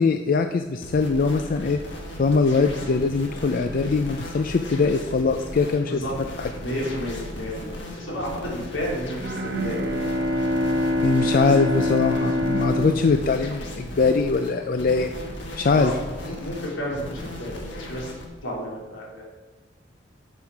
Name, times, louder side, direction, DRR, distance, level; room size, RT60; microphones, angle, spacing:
voice 1, 0.0-1.8 2.2-6.0 6.4-6.5 11.0-15.1 15.6-15.9, left 4 dB, 50° left, 7 dB, 0.4 m, -22 dB
sound 1, 0.8-18.3, left 1 dB, 70° left, 1.6 m, -37 dB
voice 2, 6.6-9.2 9.5-10.0 15.7-15.9 16.2-18.1 18.4-19.2, equal, 85° left, -3 dB, 3.2 m, -31 dB
Bowed string instrument, 9.2-14.1, left 1 dB, 55° right, 0.9 m, -25 dB
12.0 x 5.6 x 4.6 m, 1.2 s
head